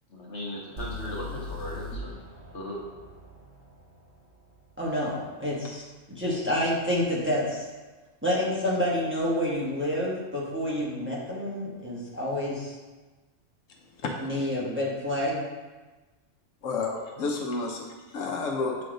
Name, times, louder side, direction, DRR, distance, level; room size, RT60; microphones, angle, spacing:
voice 1, 0.1-2.2 2.5-2.8, left 1 dB, 60° left, -4 dB, 1.5 m, -37 dB
sound 1, 0.8-4.7, left 2 dB, 40° right, 1.1 m, -40 dB
voice 2, 4.8-7.7 8.2-12.8 14.2-15.4, left 1 dB, 10° right, -6 dB, 1.1 m, -28 dB
voice 3, 16.6-18.8, left 3 dB, 75° left, 1 dB, 1.1 m, -30 dB
7.7 x 3.4 x 3.8 m, 1.2 s
omnidirectional pair, 1.3 m